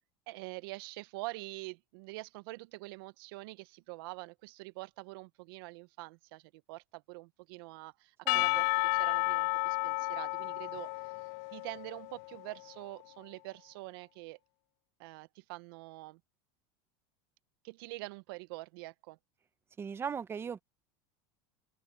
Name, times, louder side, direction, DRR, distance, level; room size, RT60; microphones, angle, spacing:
voice 1, 0.3-11.1 11.5-14.4 15.0-16.2 17.6-19.2, right 23 dB, 70° right, 0.6 m, -45 dB
Percussion / Church bell, 8.3-12.6, left 28 dB, 60° left, 0.4 m, -32 dB
voice 2, 19.8-20.6, right 7 dB, 20° right, 0.7 m, -38 dB
open air
supercardioid pair, 140°, 12 cm